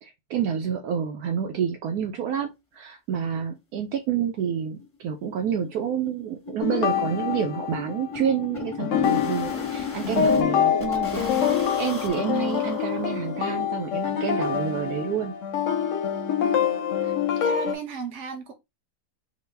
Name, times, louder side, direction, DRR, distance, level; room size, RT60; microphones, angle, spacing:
voice 1, 0.0-15.3, right 8 dB, 75° right, 1.0 m, -29 dB
sound 1, 3.6-3.7 4.0-4.1 4.4-4.5 4.8-5.0 5.2-10.4 10.8-13.6, left 4 dB, 30° left, 0.6 m, -38 dB
sound 2, 6.6-8.4 8.8-17.7, left 8 dB, 65° left, 0.8 m, -25 dB
voice 2, 16.4-17.1 17.4-18.5, right 6 dB, 55° right, 1.1 m, -36 dB
3.8 x 2.1 x 3.3 m
omnidirectional pair, 1.7 m